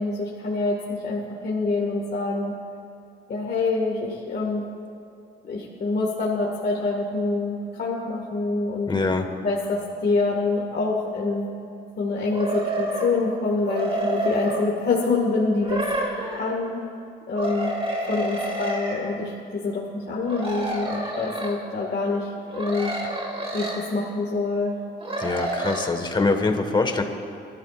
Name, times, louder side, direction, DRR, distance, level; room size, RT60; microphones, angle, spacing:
voice 1, 0.0-2.5 3.3-4.6 5.4-8.9 9.4-11.5 12.0-15.8 16.3-16.8 17.3-17.7 18.1-22.9 23.5-24.8, left 3 dB, 50° left, -3 dB, 2.0 m, -26 dB
voice 2, 8.9-9.3 25.2-27.0, left 3 dB, 25° left, 5 dB, 1.6 m, -23 dB
sound 1, 12.3-13.2 13.6-14.6 15.6-16.5 17.4-19.0 20.3-21.6 22.5-23.8 25.0-25.9, right 1 dB, 30° right, 3.0 m, -29 dB
25.0 x 13.5 x 2.5 m, 2.5 s
cardioid pair, 90°, 20 cm